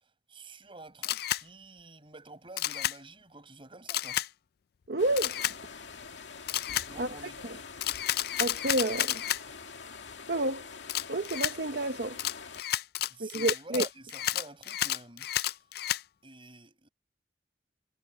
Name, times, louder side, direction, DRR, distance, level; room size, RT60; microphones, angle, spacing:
voice 1, 0.3-4.2 6.9-7.5 13.1-15.3 16.2-16.9, right 2 dB, 30° right, 7.2 m, -48 dB
Camera, 1.0-1.4 2.6-3.0 3.9-4.3 5.2-5.6 6.5-6.9 7.8-9.4 10.9-11.5 12.2-16.0, left 13 dB, 60° left, 0.4 m, -31 dB
voice 2, 4.9-5.3 7.0-7.1 7.4-7.6 8.4-9.2 10.3-10.6 11.1-12.2 13.2-13.8, right 2 dB, 60° right, 1.1 m, -29 dB
sound 1, 5.0-12.6, left 5 dB, 90° left, 2.2 m, -45 dB
head